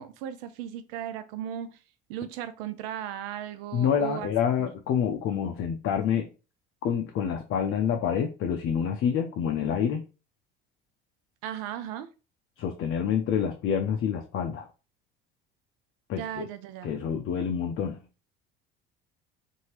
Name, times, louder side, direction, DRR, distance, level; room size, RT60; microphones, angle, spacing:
voice 1, 0.0-1.8 2.1-4.3 4.6-4.7 11.4-12.1 16.2-16.9, right 10 dB, 75° right, 0.5 m, -36 dB
voice 2, 3.7-6.3 6.8-10.0 12.6-14.7 16.1-16.5 16.8-18.0, left 8 dB, 45° left, 0.5 m, -27 dB
2.8 x 2.6 x 3.0 m
hypercardioid pair, 70°, 29 cm